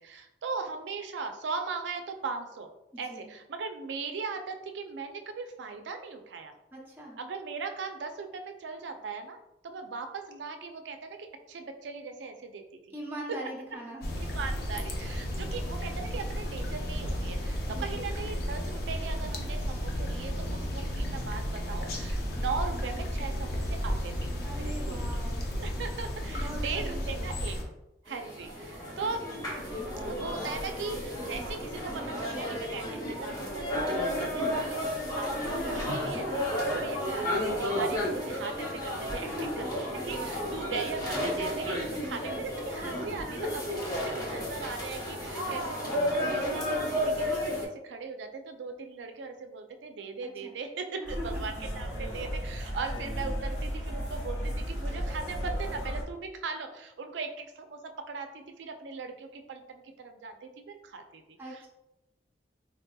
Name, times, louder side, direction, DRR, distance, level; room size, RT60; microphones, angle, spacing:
voice 1, 0.0-2.7 3.0-6.5 7.2-9.4 9.6-12.8 13.3-13.4 14.2-25.2 25.6-27.6 28.0-29.3 30.1-61.7, right 4 dB, 80° right, 6 dB, 0.4 m, -39 dB
voice 2, 2.9-3.3 6.7-7.2 12.9-14.0 17.7-18.0 24.4-25.4 26.3-27.3 39.2-40.4 50.4-50.5 51.0-51.4 61.4-61.7, right 1 dB, 10° right, -3 dB, 0.6 m, -41 dB
sound 1, 14.0-27.6, equal, 60° left, 0.6 m, -33 dB
sound 2, 28.1-47.6, equal, 20° left, 0.8 m, -32 dB
sound 3, 51.1-56.0, equal, 90° left, 1.0 m, -34 dB
4.0 x 2.7 x 2.2 m, 0.90 s
head